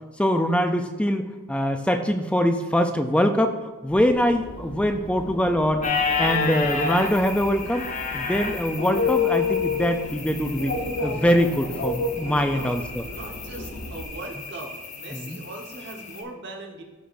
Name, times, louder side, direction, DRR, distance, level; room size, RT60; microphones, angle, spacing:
voice 1, 0.2-3.5 3.8-5.9 6.2-10.7 11.0-13.0 15.1-15.4, equal, 5° left, 6 dB, 0.4 m, -23 dB
sound 1, 3.9-14.0, left 5 dB, 65° left, 0.9 m, -31 dB
sound 2, 5.8-16.2, left 4 dB, 35° left, 0.8 m, -32 dB
voice 2, 12.3-12.7 13.0-16.8, right 2 dB, 55° right, 1 dB, 1.3 m, -40 dB
14.5 x 5.1 x 2.6 m, 1.3 s
head